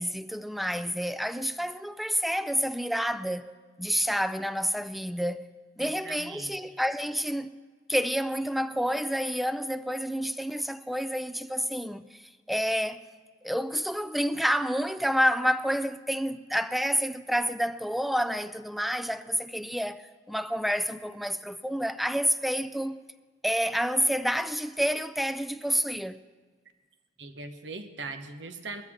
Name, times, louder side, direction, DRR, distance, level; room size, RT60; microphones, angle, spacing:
voice 1, 0.0-5.5 5.8-7.5 7.9-12.2 12.5-13.0 13.4-23.0 23.4-26.2, equal, ahead, 0.4 m, -29 dB
voice 2, 5.8-6.6 27.2-28.8, right 3 dB, 80° right, 1.1 m, -40 dB
20.5 x 13.5 x 3.7 m
head